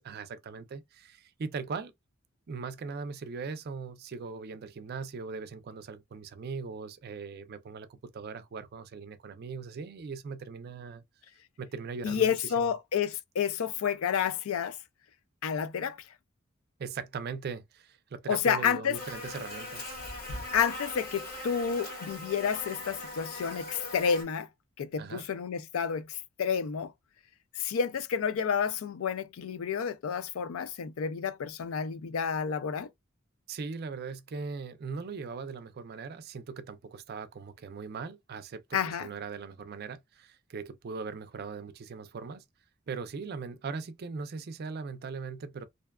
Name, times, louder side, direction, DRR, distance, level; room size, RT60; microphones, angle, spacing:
voice 1, 0.0-1.9 2.5-11.0 11.6-12.7 16.8-20.0 25.0-25.3 33.5-42.4 42.9-45.6, right 5 dB, 50° right, 0.4 m, -40 dB
voice 2, 12.0-14.8 15.4-16.0 18.3-19.0 20.5-24.5 24.8-26.9 27.5-32.9 38.7-39.1, left 7 dB, 85° left, 0.4 m, -30 dB
Buzz, 18.9-24.2, left 2 dB, 45° left, 1.1 m, -40 dB
2.5 x 2.3 x 2.2 m
head